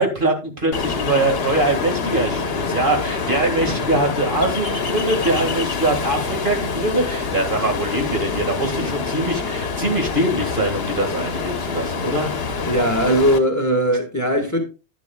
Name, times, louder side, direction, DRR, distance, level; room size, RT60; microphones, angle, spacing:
voice 1, 0.0-12.3, right 2 dB, 50° right, 2.1 m, -22 dB
Ocean, 0.7-13.4, left 4 dB, 65° left, 1.3 m, -26 dB
voice 2, 12.7-14.6, equal, 15° left, 1.7 m, -19 dB
10.5 x 10.5 x 2.3 m
omnidirectional pair, 1.1 m